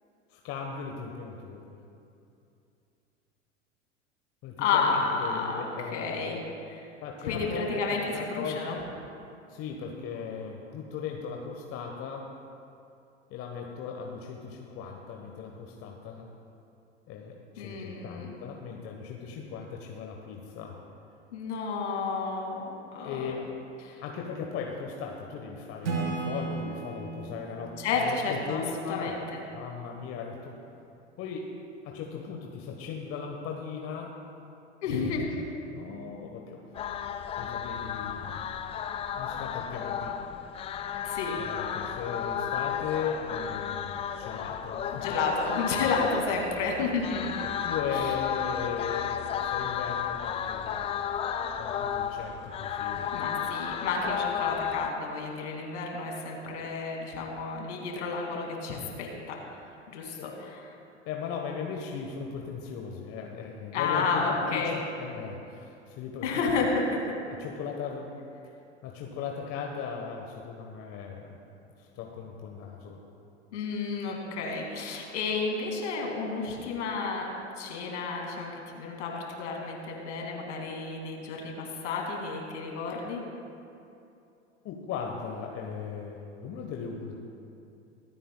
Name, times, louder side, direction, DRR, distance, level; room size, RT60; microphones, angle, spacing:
voice 1, 0.3-1.7 4.4-6.4 7.0-7.8 8.1-8.8 9.5-12.2 13.3-16.3 17.1-20.7 23.0-23.5 24.0-30.5 31.2-31.5 31.8-34.1 34.9-35.1 35.7-36.6 37.4-38.5 39.1-40.2 41.3-45.1 45.9-46.1 47.4-50.9 51.6-53.3 60.2-60.4 61.0-64.6 65.0-66.4 67.4-68.1 68.8-71.4 71.8-73.0 84.6-87.2, left 6 dB, 40° left, 1 dB, 1.2 m, -38 dB
voice 2, 4.6-5.7 5.9-6.4 6.7-6.8 7.2-8.8 17.6-18.4 21.3-23.3 23.8-24.0 27.8-28.6 28.9-29.4 34.8-35.4 41.0-41.4 44.9-47.4 53.1-59.4 59.9-60.6 63.7-64.7 66.2-67.1 73.5-83.2, left 4 dB, 70° left, 0 dB, 2.5 m, -31 dB
Acoustic guitar / Strum, 25.8-29.4, right 4 dB, 80° right, 1.9 m, -36 dB
sound 1, 36.7-54.9, left 8 dB, 15° left, 0.3 m, -33 dB
24.5 x 9.0 x 2.3 m, 2.7 s
hypercardioid pair, 90°, 36 cm